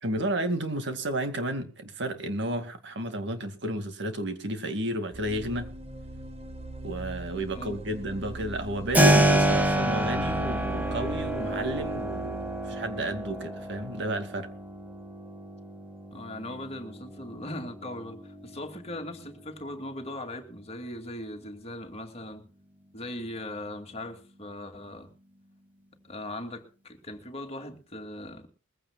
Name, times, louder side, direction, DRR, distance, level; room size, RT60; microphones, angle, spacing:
voice 1, 0.0-5.7 6.8-14.5, right 1 dB, 65° right, 2.3 m, -32 dB
sound 1, 5.1-14.9, right 2 dB, 35° right, 1.3 m, -40 dB
Keyboard (musical), 8.9-19.6, right 1 dB, 10° right, 1.8 m, -28 dB
voice 2, 16.1-22.4 22.9-25.1 26.0-28.5, left 1 dB, 35° left, 2.4 m, -39 dB
21.5 x 15.5 x 2.4 m
head